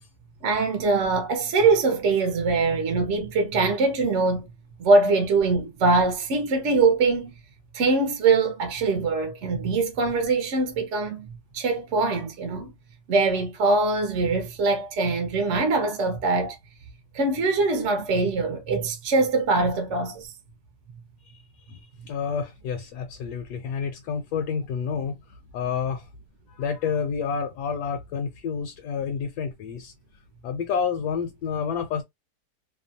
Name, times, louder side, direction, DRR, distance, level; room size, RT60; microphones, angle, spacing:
voice 1, 0.4-4.5 4.8-7.3 7.7-11.3 11.5-12.7 13.1-16.6 17.1-20.3, right 3 dB, 55° right, 0.9 m, -23 dB
voice 2, 21.3-26.1 26.5-29.9 30.4-32.0, left 6 dB, 80° left, 1.1 m, -29 dB
2.8 x 2.2 x 2.6 m
omnidirectional pair, 1.8 m